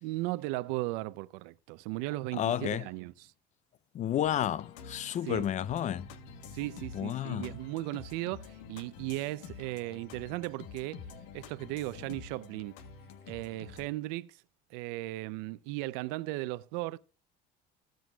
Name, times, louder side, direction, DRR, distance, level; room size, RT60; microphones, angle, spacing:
voice 1, 0.0-3.3 5.3-5.5 6.5-11.1 11.3-12.8 13.3-14.4 14.7-17.0, right 18 dB, 85° right, 0.6 m, -36 dB
voice 2, 2.3-2.9 3.9-6.1 6.9-7.5, left 11 dB, 40° left, 0.5 m, -31 dB
sound 1, 4.2-13.9, left 5 dB, 85° left, 1.4 m, -48 dB
20.5 x 7.8 x 2.3 m
cardioid pair, 110°, 19 cm